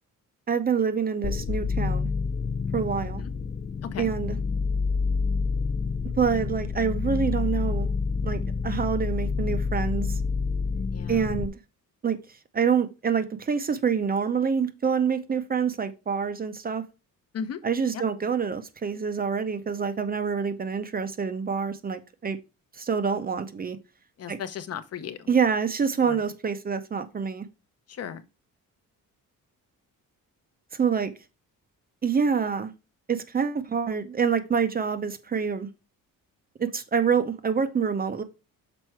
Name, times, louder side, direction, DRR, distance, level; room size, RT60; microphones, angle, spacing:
voice 1, 0.5-2.1 2.7-3.2 4.0-4.4 6.2-7.9 8.2-10.2 11.1-11.5 12.0-12.2 12.5-16.8 17.6-22.4 22.8-23.8 24.3-24.4 25.3-27.5 30.7-31.1 32.0-32.7 33.1-35.7 36.6-38.2, right 6 dB, 25° right, 0.6 m, -26 dB
sound 1, 1.2-11.5, left 5 dB, 30° left, 0.3 m, -28 dB
voice 2, 10.9-11.3 17.3-17.6 17.9-18.0 24.2-25.3 26.1-26.2 27.9-28.2, left 7 dB, 45° left, 0.8 m, -36 dB
6.2 x 4.5 x 4.4 m
cardioid pair, 145°, 34 cm